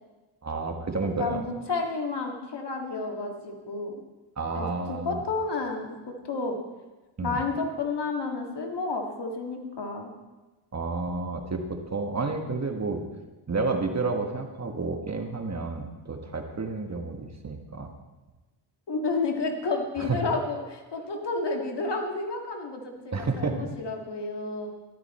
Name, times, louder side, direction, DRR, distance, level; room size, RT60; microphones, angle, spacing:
voice 1, 0.4-1.4 4.4-5.2 7.2-7.4 10.7-13.0 13.5-17.9 20.0-20.2 23.1-23.7, right 3 dB, 35° right, 4 dB, 1.5 m, -30 dB
voice 2, 1.2-4.0 4.5-5.9 6.2-6.6 7.2-10.1 18.9-24.7, left 3 dB, 60° left, 2 dB, 2.1 m, -31 dB
13.5 x 12.0 x 4.4 m, 1.2 s
cardioid pair, 90°, 47 cm